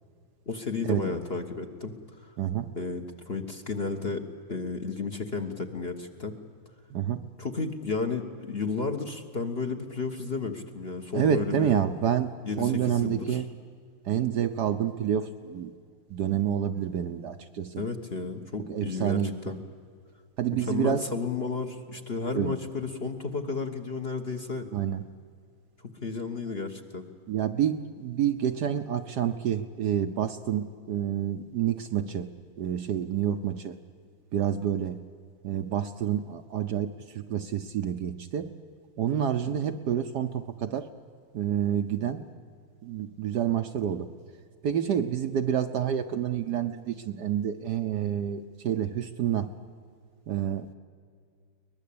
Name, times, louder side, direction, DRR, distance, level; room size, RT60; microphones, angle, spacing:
voice 1, 0.5-2.3 2.7-4.2 4.5-6.3 7.4-11.8 12.5-13.4 17.7-19.6 20.5-24.7 26.0-27.1, left 4 dB, 35° left, 4 dB, 1.2 m, -33 dB
voice 2, 2.4-2.7 6.9-7.2 11.1-12.3 12.6-13.5 14.0-15.7 16.1-17.8 18.7-19.5 20.4-21.0 22.3-22.5 24.7-25.0 27.3-32.3 32.6-33.8 34.3-35.0 35.4-38.5 39.0-40.9 41.3-42.2 42.8-44.1 44.6-49.5 50.3-50.7, right 9 dB, 65° right, 8 dB, 1.2 m, -28 dB
23.0 x 20.0 x 8.5 m, 2.2 s
omnidirectional pair, 2.2 m